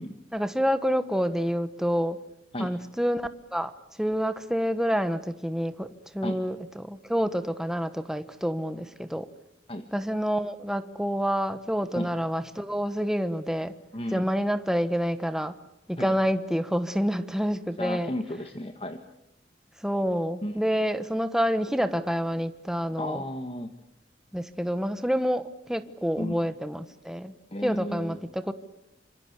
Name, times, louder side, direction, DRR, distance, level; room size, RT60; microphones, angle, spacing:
voice 1, 0.3-2.2 2.6-3.7 4.0-9.3 9.9-13.7 14.1-15.5 15.9-18.1 19.8-23.2 24.3-27.3 27.6-28.5, equal, 5° right, 11 dB, 1.1 m, -28 dB
voice 2, 13.9-14.3 16.0-16.2 17.8-19.0 20.4-20.6 23.0-23.7 26.2-26.5 27.5-28.2, left 1 dB, 30° left, 7 dB, 1.6 m, -34 dB
27.0 x 26.0 x 8.2 m, 0.82 s
head